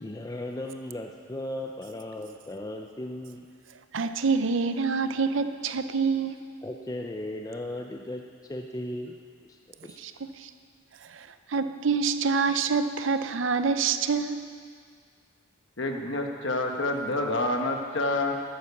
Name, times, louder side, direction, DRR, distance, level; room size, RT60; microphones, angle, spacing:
voice 1, 0.0-3.5 6.6-9.2 9.4-10.0, left 1 dB, 15° left, 3 dB, 0.5 m, -36 dB
voice 2, 3.9-6.3 10.0-10.5 11.1-14.4, right 5 dB, 60° right, 10 dB, 0.6 m, -26 dB
voice 3, 15.8-18.3, left 2 dB, 60° left, 3 dB, 1.3 m, -28 dB
12.0 x 9.5 x 7.1 m, 2.1 s
head